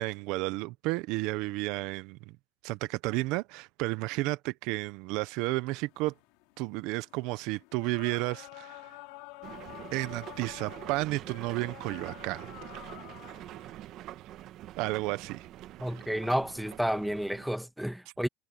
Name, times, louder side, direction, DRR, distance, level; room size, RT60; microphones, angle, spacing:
voice 1, 0.0-2.4 2.6-6.1 6.6-9.0 9.9-12.8 14.8-15.5, right 21 dB, 70° right, 0.8 m, -32 dB
sound 1, 5.8-13.7, left 22 dB, 80° left, 2.9 m, -49 dB
sound 2, 9.4-17.6, right 13 dB, 55° right, 1.4 m, -45 dB
voice 2, 15.8-18.3, equal, ahead, 1.5 m, -31 dB
cardioid pair, 125°, 0 cm